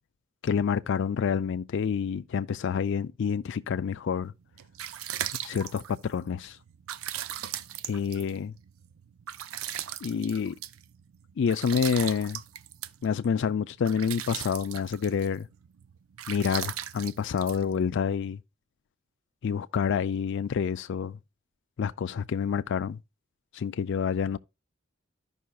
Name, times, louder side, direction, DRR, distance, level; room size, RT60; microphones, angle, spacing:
voice 1, 0.4-4.3 5.4-6.6 7.9-8.5 10.0-10.5 11.4-12.4 13.0-15.5 16.3-18.4 19.4-21.2 21.8-23.0 23.5-24.4, left 6 dB, 60° left, 0.4 m, -28 dB
sound 1, 4.3-18.3, right 11 dB, 90° right, 0.4 m, -39 dB
14.0 x 5.5 x 2.3 m
head